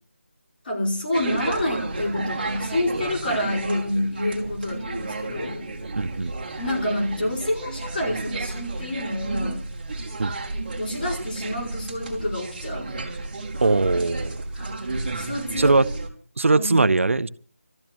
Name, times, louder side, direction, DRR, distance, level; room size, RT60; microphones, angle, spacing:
voice 1, 0.6-5.7 6.6-9.6 10.8-12.9 14.5-14.7 15.2-15.8 16.5-16.8, left 1 dB, 40° left, 5.2 m, -28 dB
sound 1, 1.1-16.1, right 2 dB, 35° right, 2.5 m, -32 dB
voice 2, 5.9-6.3 10.2-10.3 13.6-14.4 15.6-15.8 16.4-17.3, right 3 dB, 65° right, 0.7 m, -20 dB
26.0 x 14.0 x 3.0 m
figure-of-eight pair, 170°, 8 cm